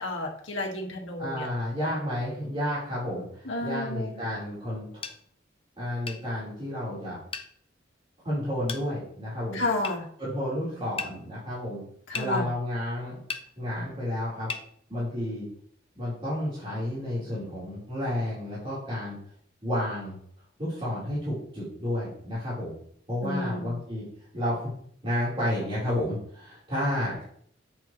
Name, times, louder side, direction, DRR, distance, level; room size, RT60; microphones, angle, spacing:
voice 1, 0.0-1.5 3.5-4.2 9.5-10.0 12.1-12.5 23.2-23.8, left 2 dB, 80° left, 0 dB, 1.9 m, -31 dB
voice 2, 1.2-5.1 5.8-7.2 8.2-9.6 10.2-11.8 12.1-13.2 13.6-14.5 14.9-15.5 16.0-19.2 19.6-20.2 20.6-22.7 23.1-24.0 24.3-24.7 25.0-27.2, left 1 dB, 30° right, -10 dB, 4.2 m, -31 dB
sound 1, 5.0-5.2 6.1-6.2 7.3-7.5 8.7-8.9 9.8-10.0 11.0-11.1 12.1-12.3 13.3-13.5 14.5-14.7, left 4 dB, 30° left, 0.7 m, -34 dB
8.8 x 7.5 x 3.2 m, 0.63 s
head